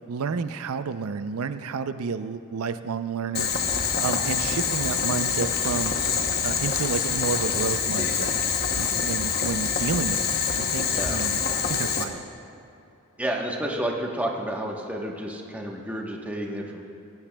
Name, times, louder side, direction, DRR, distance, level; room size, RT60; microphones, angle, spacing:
voice 1, 0.1-3.5 4.0-6.0 6.4-8.4 8.7-11.4 11.7-12.2, right 5 dB, 85° right, 11 dB, 0.5 m, -30 dB
Boiling, 3.3-12.0, left 6 dB, 45° left, 0.8 m, -26 dB
voice 2, 13.2-16.8, right 1 dB, 5° right, -1 dB, 1.0 m, -30 dB
18.0 x 16.0 x 2.3 m, 2.7 s
head